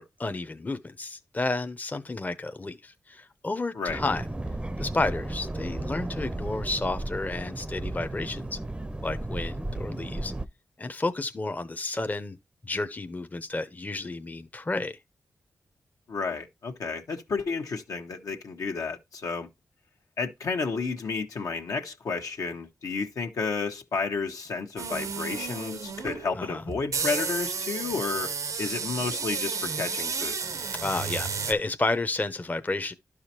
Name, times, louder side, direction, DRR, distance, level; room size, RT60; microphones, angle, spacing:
voice 1, 0.0-4.2 4.8-8.6 9.0-10.3 10.8-12.4 12.6-15.0 26.3-26.6 30.7-32.9, left 2 dB, 30° left, 0.7 m, -31 dB
sound 1, 3.9-10.5, right 2 dB, 15° right, 0.6 m, -34 dB
voice 2, 16.1-19.5 20.2-28.3 28.6-30.4, left 4 dB, 80° left, 1.2 m, -31 dB
sound 2, 24.8-31.5, right 5 dB, 75° right, 0.7 m, -32 dB
11.5 x 4.9 x 2.8 m
cardioid pair, 65°, 6 cm